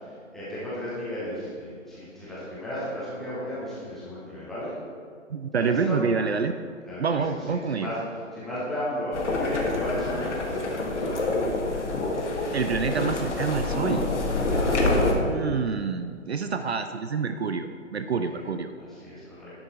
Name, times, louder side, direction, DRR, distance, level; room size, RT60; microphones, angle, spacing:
voice 1, 0.3-4.7 5.5-6.0 6.9-7.2 7.5-8.0 8.3-11.2 14.5-14.8 18.3-18.4 18.9-19.5, equal, ahead, -11 dB, 0.7 m, -34 dB
voice 2, 5.3-6.5 7.0-7.9 12.5-14.0 15.2-18.7, right 5 dB, 55° right, 8 dB, 0.5 m, -27 dB
sound 1, 9.1-15.1, left 2 dB, 60° left, 1.4 m, -26 dB
10.0 x 5.5 x 4.1 m, 2.1 s
figure-of-eight pair, 140°, 39 cm